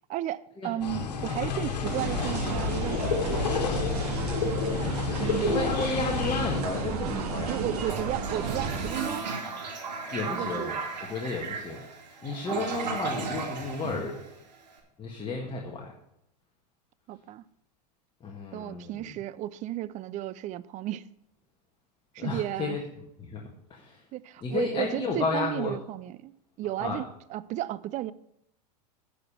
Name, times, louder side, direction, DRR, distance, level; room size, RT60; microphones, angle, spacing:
voice 1, 0.1-4.0 5.2-5.6 7.5-9.3 10.2-10.8 17.1-17.4 18.5-21.0 22.1-22.8 24.1-26.3 26.6-28.1, right 14 dB, 35° right, 0.4 m, -34 dB
sound 1, 0.8-6.6, left 6 dB, 80° left, 1.5 m, -30 dB
sound 2, 1.8-8.9, right 5 dB, 65° right, 2.0 m, -33 dB
voice 2, 5.5-7.8 10.1-10.8 11.1-11.8 12.2-14.2 15.0-15.9 18.2-19.1 22.2-22.8 23.2-23.4 23.7-24.0 24.4-25.8 26.8-27.0, left 4 dB, 25° left, 1.6 m, -32 dB
Toilet flush, 7.7-14.7, right 4 dB, 90° right, 2.4 m, -35 dB
10.5 x 5.1 x 7.1 m
hypercardioid pair, 100°, 21 cm